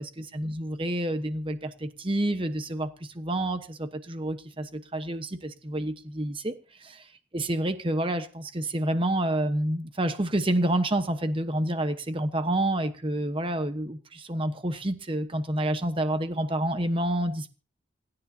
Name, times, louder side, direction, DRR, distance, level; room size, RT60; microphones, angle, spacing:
voice 1, 0.0-6.5 6.8-7.0 7.3-17.5, right 1 dB, 30° right, 1.1 m, -28 dB
27.5 x 9.7 x 2.8 m
head